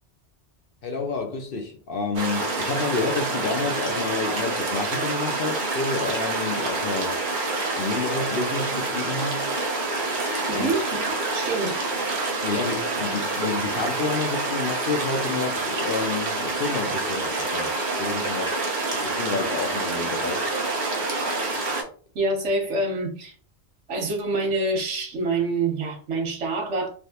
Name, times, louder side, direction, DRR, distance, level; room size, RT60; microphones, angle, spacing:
voice 1, 0.8-7.2 7.8-9.5 10.5-10.7 12.4-18.6 19.0-20.5, left 4 dB, 60° left, 0.7 m, -29 dB
sound 1, 2.2-21.8, right 2 dB, 45° right, 0.8 m, -27 dB
voice 2, 10.5-11.7 22.1-23.4 23.9-26.9, right 2 dB, 80° right, 1.2 m, -26 dB
3.3 x 2.4 x 2.7 m
omnidirectional pair, 1.2 m